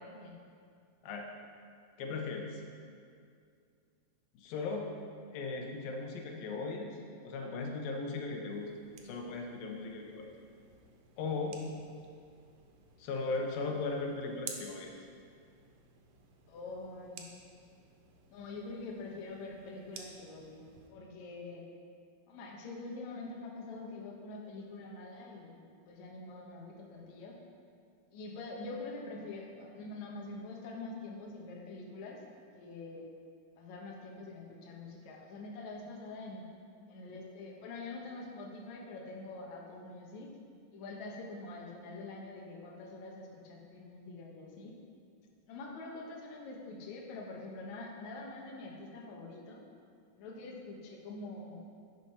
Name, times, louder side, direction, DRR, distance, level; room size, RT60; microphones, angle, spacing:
voice 1, 2.0-2.6 4.3-4.9 5.3-7.0 7.2-8.7 9.0-10.3 11.2-11.6 13.0-14.9, left 3 dB, 85° left, 2 dB, 2.7 m, -37 dB
sound 1, 8.5-20.9, right 5 dB, 75° right, 2.5 m, -54 dB
voice 2, 16.5-17.3 18.3-21.7 22.3-27.4 28.1-32.2 32.5-33.1 33.6-36.4 36.9-40.3 40.7-44.8 45.5-49.6 50.2-51.7, left 3 dB, 65° left, -1 dB, 2.2 m, -45 dB
10.0 x 6.6 x 5.5 m, 2.3 s
omnidirectional pair, 4.0 m